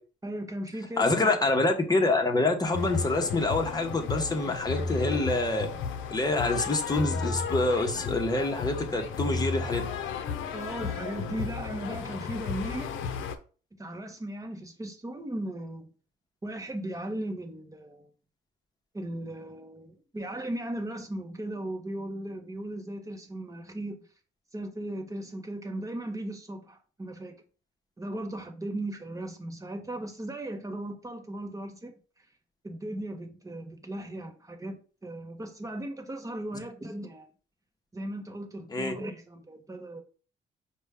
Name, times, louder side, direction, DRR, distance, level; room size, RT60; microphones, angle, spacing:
voice 1, 0.2-1.4 10.5-12.9 13.8-15.9 16.4-18.1 18.9-24.0 24.5-27.4 28.0-31.9 32.6-37.3 37.9-40.0, right 1 dB, 15° right, 0.9 m, -37 dB
voice 2, 1.0-5.7 6.1-9.9 38.7-38.9, left 2 dB, 20° left, 0.9 m, -26 dB
sound 1, 2.7-13.4, left 5 dB, 80° left, 0.6 m, -33 dB
5.0 x 2.2 x 3.5 m
cardioid pair, 90°, 20 cm